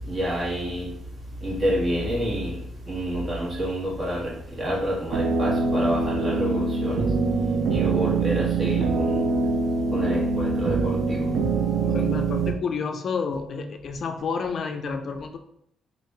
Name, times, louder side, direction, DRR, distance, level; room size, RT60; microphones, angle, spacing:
voice 1, 0.1-0.9 1.4-2.5 2.9-7.1 7.7-9.2 9.9-11.3 11.7-12.1, equal, 40° right, -5 dB, 1.4 m, -28 dB
sound 1, 5.1-12.5, right 4 dB, 80° right, 0.4 m, -24 dB
voice 2, 11.8-15.4, left 5 dB, 55° left, 6 dB, 0.3 m, -30 dB
3.0 x 2.5 x 3.2 m, 0.73 s
cardioid pair, 90°, 0 cm